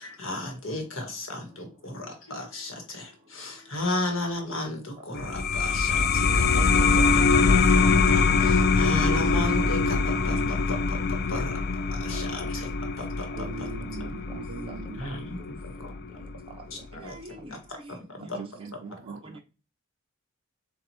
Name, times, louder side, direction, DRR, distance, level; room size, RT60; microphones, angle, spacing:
voice 1, 0.0-7.8 8.1-11.0 11.3-11.5 11.9-12.7 13.0-13.7 14.0-14.1 15.0-15.9 16.7-17.1 17.5-17.6 17.9-18.4 18.9-19.0, left 2 dB, 70° left, 1.4 m, -34 dB
sound 1, 5.1-16.3, left 4 dB, 50° left, 0.4 m, -23 dB
voice 2, 7.8-10.6 13.4-15.0 18.2-19.4, right 4 dB, 65° right, 0.4 m, -41 dB
voice 3, 15.0-15.5 15.8-15.9 16.1-16.3 17.0-18.3 18.9-19.4, right 1 dB, 25° right, 1.0 m, -46 dB
7.2 x 2.5 x 2.8 m
head